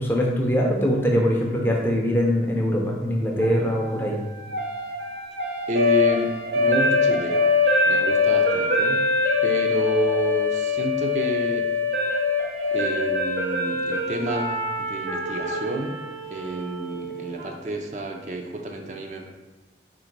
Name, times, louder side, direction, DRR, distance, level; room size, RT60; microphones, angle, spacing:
voice 1, 0.0-4.2, equal, 10° left, -1 dB, 0.5 m, -22 dB
sound 1, 3.4-17.5, left 3 dB, 70° right, 0.9 m, -24 dB
voice 2, 5.7-7.4 7.9-9.0 9.4-11.7 12.7-16.0 16.3-19.2, right 1 dB, 40° right, 2 dB, 0.4 m, -29 dB
3.8 x 2.9 x 4.5 m, 1.2 s
head